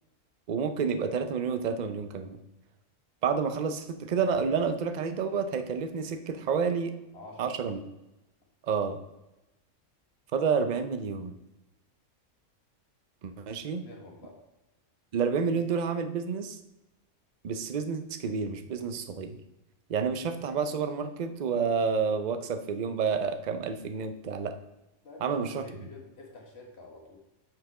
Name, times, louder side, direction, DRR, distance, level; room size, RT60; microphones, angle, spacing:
voice 1, 0.5-2.4 3.2-6.9 7.4-7.8 8.7-9.0 10.3-11.3 13.2-13.8 15.1-16.6 17.4-19.4 19.9-24.6 25.2-25.6, right 6 dB, 45° right, 8 dB, 0.6 m, -29 dB
voice 2, 7.1-7.6 13.4-13.5 13.8-14.4 25.0-27.2, left 3 dB, 55° left, 0 dB, 1.8 m, -48 dB
5.9 x 5.7 x 4.8 m, 0.95 s
omnidirectional pair, 1.3 m